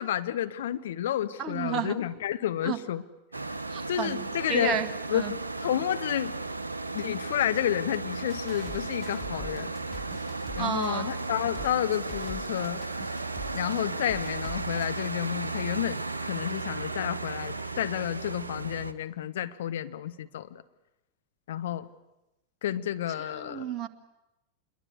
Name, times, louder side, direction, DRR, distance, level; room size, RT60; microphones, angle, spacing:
voice 1, 0.0-3.0 3.9-4.8 5.1-6.4 6.9-9.7 10.6-12.8 13.5-20.6 21.5-21.9 22.6-23.7, left 11 dB, 60° left, 10 dB, 1.1 m, -30 dB
voice 2, 1.4-2.0 2.6-2.8 3.7-4.9 5.1-5.3 10.6-11.1 23.2-23.9, right 7 dB, 30° right, 8 dB, 1.7 m, -32 dB
sound 1, 3.3-18.9, right 3 dB, 80° right, 0.9 m, -35 dB
sound 2, 7.9-8.0 8.3-13.7 14.1-14.9, equal, 10° right, 3.0 m, -45 dB
27.0 x 22.5 x 8.2 m, 0.94 s
figure-of-eight pair, 90°, 0 cm